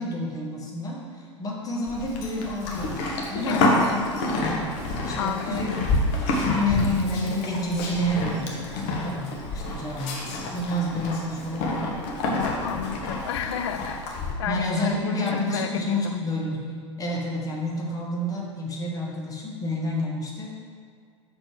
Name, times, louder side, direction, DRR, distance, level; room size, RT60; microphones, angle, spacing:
voice 1, 0.0-3.0 3.3-4.8 5.0-5.7 6.5-10.2 10.5-11.9 14.5-20.6, left 1 dB, 20° left, -2 dB, 1.4 m, -29 dB
Livestock farm animals working animals, 1.9-14.3, left 2 dB, 45° left, 1.2 m, -28 dB
voice 2, 5.2-5.9 6.3-6.9 12.4-14.1 14.4-16.2, left 9 dB, 60° left, 8 dB, 0.5 m, -32 dB
6.5 x 4.3 x 4.9 m, 2.2 s
figure-of-eight pair, 85°, 16 cm